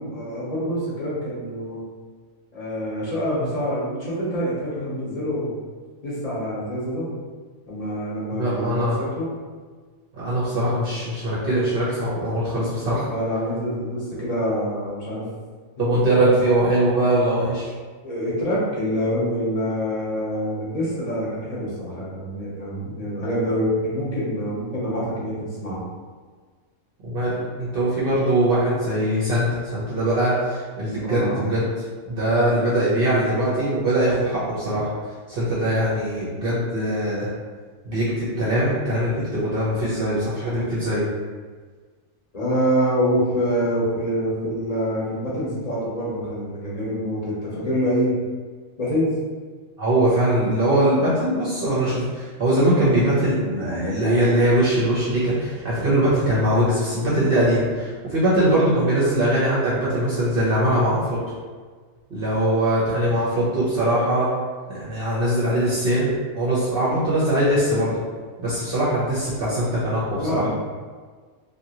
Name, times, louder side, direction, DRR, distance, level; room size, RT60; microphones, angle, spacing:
voice 1, 0.0-1.8 2.5-5.5 6.0-7.1 7.7-9.3 13.1-15.3 15.8-16.4 18.0-25.8 31.0-31.4 42.3-48.1 48.8-49.2 70.2-70.5, equal, 35° left, -8 dB, 0.8 m, -26 dB
voice 2, 8.4-9.0 10.1-13.0 15.8-17.7 27.0-31.7 32.1-34.9 35.3-37.3 37.8-41.1 49.8-61.2 62.1-64.3 64.7-68.0 68.4-70.4, right 1 dB, 50° right, -9 dB, 0.8 m, -21 dB
2.8 x 2.6 x 2.8 m, 1.5 s
omnidirectional pair, 1.4 m